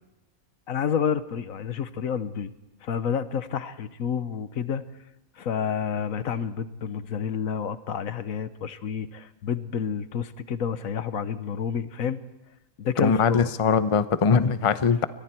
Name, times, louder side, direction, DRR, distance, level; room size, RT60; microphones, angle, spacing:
voice 1, 0.7-2.5 2.8-4.8 5.4-12.2 12.8-13.5, left 7 dB, 75° left, 13 dB, 1.4 m, -29 dB
voice 2, 13.0-15.1, left 5 dB, 30° left, 12 dB, 0.7 m, -21 dB
29.5 x 23.5 x 4.5 m, 0.94 s
omnidirectional pair, 1.4 m